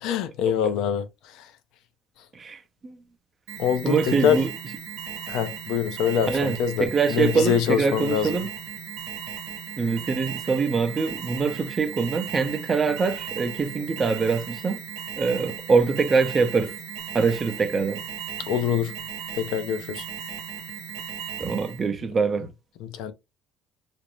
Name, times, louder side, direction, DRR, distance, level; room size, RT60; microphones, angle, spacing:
voice 1, 0.0-1.1 1.3-1.5 3.6-4.4 5.3-8.4 18.4-18.9 19.3-20.0 22.8-23.1, left 8 dB, 75° left, 0.5 m, -24 dB
voice 2, 2.3-3.0 3.8-4.5 6.3-8.5 9.8-14.8 15.2-16.7 17.1-18.0 21.4-22.5, right 5 dB, 30° right, 0.5 m, -24 dB
Alarm, 3.5-21.9, right 7 dB, 85° right, 0.8 m, -37 dB
2.5 x 2.1 x 3.0 m
supercardioid pair, 95°, 0 cm